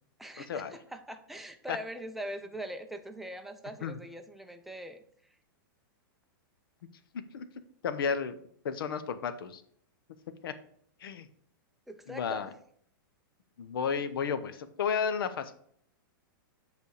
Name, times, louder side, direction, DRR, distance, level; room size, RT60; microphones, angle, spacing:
voice 1, 0.2-5.0 11.9-12.6, right 1 dB, ahead, 6 dB, 0.4 m, -42 dB
voice 2, 7.8-8.3 8.6-9.6 10.4-10.5 11.0-11.3 12.1-12.5 13.6-15.5, left 6 dB, 80° left, 11 dB, 0.8 m, -32 dB
8.2 x 3.4 x 6.3 m, 0.64 s
supercardioid pair, 160°, 12 cm